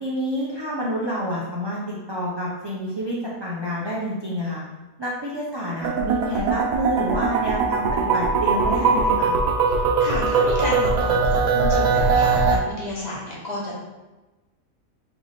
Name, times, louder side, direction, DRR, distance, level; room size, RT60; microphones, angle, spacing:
voice 1, 0.0-3.2 3.4-4.6 5.0-9.3, equal, 40° right, -6 dB, 0.3 m, -28 dB
sound 1, 5.8-12.6, right 4 dB, 85° right, 1.1 m, -21 dB
voice 2, 9.7-13.8, left 1 dB, 35° left, -6 dB, 1.0 m, -31 dB
3.4 x 3.2 x 4.0 m, 1.1 s
omnidirectional pair, 1.5 m